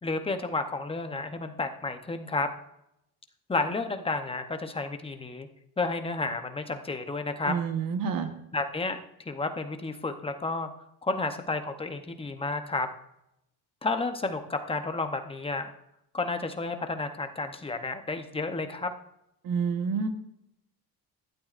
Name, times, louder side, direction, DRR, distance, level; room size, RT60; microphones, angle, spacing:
voice 1, 0.0-2.5 3.5-5.5 5.8-7.6 8.5-10.7 11.0-12.9 13.8-15.7 16.1-18.9, left 3 dB, 15° left, 6 dB, 0.8 m, -31 dB
voice 2, 7.5-8.3 19.4-20.1, right 6 dB, 55° right, 7 dB, 1.4 m, -28 dB
15.5 x 12.0 x 2.5 m, 0.82 s
cardioid pair, 170°, 39 cm